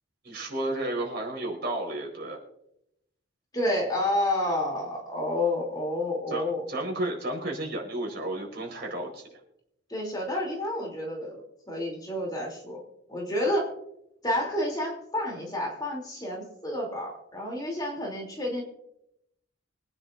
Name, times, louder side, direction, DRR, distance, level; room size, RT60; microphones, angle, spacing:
voice 1, 0.2-2.4 6.3-9.2, right 1 dB, 55° right, 1 dB, 4.4 m, -32 dB
voice 2, 3.5-6.6 9.9-12.8 13.1-13.7 14.2-18.6, left 1 dB, 20° left, -2 dB, 3.0 m, -30 dB
25.0 x 9.8 x 2.6 m, 0.79 s
head